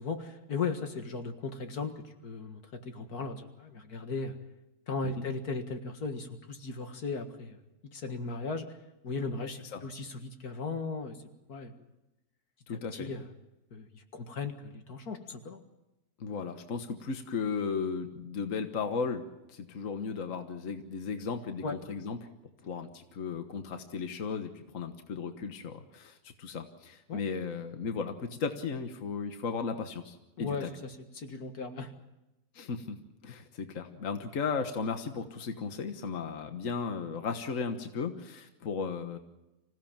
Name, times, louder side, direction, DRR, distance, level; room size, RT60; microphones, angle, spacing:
voice 1, 0.0-1.9 2.2-4.3 4.9-7.6 7.9-8.7 9.0-11.2 11.5-11.8 12.7-13.3 13.7-15.6 21.6-21.7 27.1-27.2 30.4-31.9, left 4 dB, 80° left, 6 dB, 2.3 m, -37 dB
voice 2, 12.7-13.1 16.2-22.2 22.6-30.7 32.5-33.0 33.2-39.2, left 5 dB, 60° left, 7 dB, 1.7 m, -35 dB
26.0 x 16.5 x 7.3 m, 0.97 s
omnidirectional pair, 1.6 m